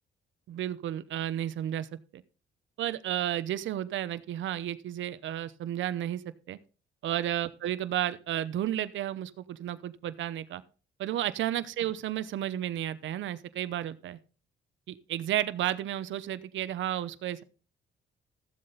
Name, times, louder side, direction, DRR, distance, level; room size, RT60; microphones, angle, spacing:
voice 1, 0.5-1.9 2.1-2.2 2.8-6.2 6.5-6.6 7.0-10.6 11.0-14.2 14.9-17.4, right 12 dB, 75° right, 14 dB, 0.8 m, -32 dB
14.0 x 7.6 x 4.0 m, 0.36 s
cardioid pair, 90°, 20 cm